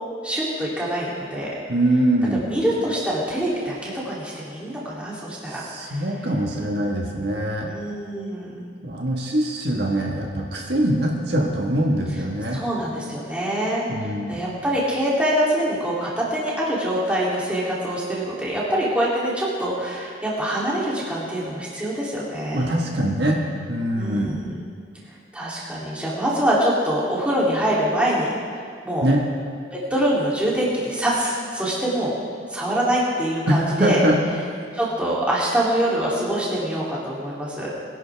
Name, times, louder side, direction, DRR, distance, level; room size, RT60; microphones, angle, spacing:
voice 1, 0.2-1.5 2.3-6.0 7.6-8.6 10.8-10.9 12.5-22.7 23.9-24.5 25.3-28.3 28.8-29.0 29.7-32.1 32.5-34.0 34.7-37.7, right 1 dB, 5° right, -7 dB, 3.0 m, -24 dB
voice 2, 1.7-2.5 5.5-7.7 8.8-12.6 13.9-14.4 22.5-23.4 23.7-24.4 29.0-29.2 33.5-34.2 34.5-34.6, right 1 dB, 60° right, -1 dB, 1.6 m, -23 dB
23.0 x 11.0 x 3.5 m, 2.3 s
head